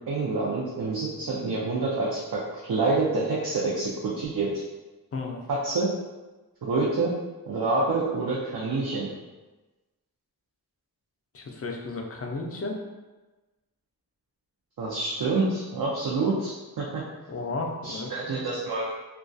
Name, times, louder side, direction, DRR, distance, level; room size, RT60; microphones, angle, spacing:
voice 1, 0.1-4.5 5.5-5.9 6.6-7.1 7.5-9.1 14.8-17.0 17.8-18.9, right 3 dB, 70° right, -5 dB, 0.5 m, -27 dB
voice 2, 11.3-12.8 17.3-18.3, left 3 dB, 40° left, 1 dB, 0.4 m, -33 dB
2.3 x 2.2 x 2.5 m, 1.2 s
wide cardioid pair, 70°, 37 cm